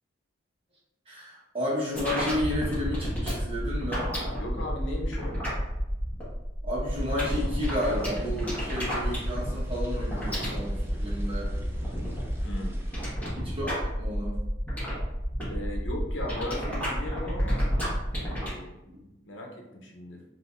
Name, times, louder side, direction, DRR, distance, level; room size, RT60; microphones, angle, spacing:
voice 1, 1.1-4.1 6.6-11.5 13.3-14.4 18.8-19.1, left 1 dB, 30° right, -6 dB, 1.3 m, -32 dB
sound 1, 1.9-18.5, equal, 10° left, 1.4 m, -31 dB
voice 2, 4.4-5.4 12.4-12.8 15.5-17.7 18.1-18.7 19.2-20.2, left 1 dB, 70° left, 1 dB, 0.8 m, -37 dB
sound 2, 6.9-13.1, equal, 10° right, 0.5 m, -43 dB
5.7 x 2.8 x 2.6 m, 0.97 s
head